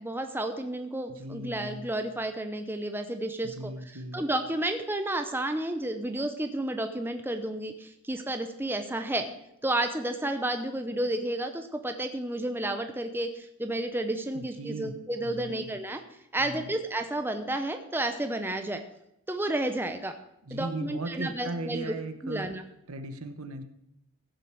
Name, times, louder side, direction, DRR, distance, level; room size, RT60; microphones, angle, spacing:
voice 1, 0.0-3.7 4.1-9.3 9.6-16.0 16.3-18.8 19.3-20.1 20.5-21.9 22.2-22.6, right 1 dB, 10° right, 6 dB, 0.7 m, -31 dB
voice 2, 1.1-1.9 3.4-4.2 14.3-14.9 15.2-15.7 16.4-16.7 20.4-22.5 22.9-23.6, right 2 dB, 75° right, 8 dB, 1.2 m, -37 dB
15.0 x 6.8 x 6.2 m, 0.81 s
head